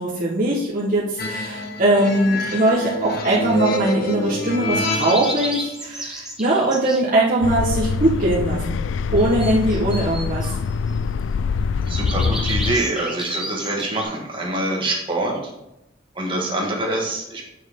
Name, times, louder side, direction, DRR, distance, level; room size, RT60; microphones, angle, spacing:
voice 1, 0.0-8.8 9.1-10.5, right 1 dB, 45° right, -6 dB, 1.3 m, -20 dB
sound 1, 1.2-5.7, left 1 dB, 55° left, 1.0 m, -27 dB
sound 2, 4.7-7.1 9.2-11.0 11.9-14.0, right 1 dB, 5° right, 1.1 m, -32 dB
sound 3, 7.4-12.8, left 5 dB, 80° left, 0.3 m, -24 dB
voice 2, 11.9-15.4 16.1-17.4, right 2 dB, 25° right, -1 dB, 1.8 m, -25 dB
8.8 x 6.2 x 3.6 m, 0.88 s
head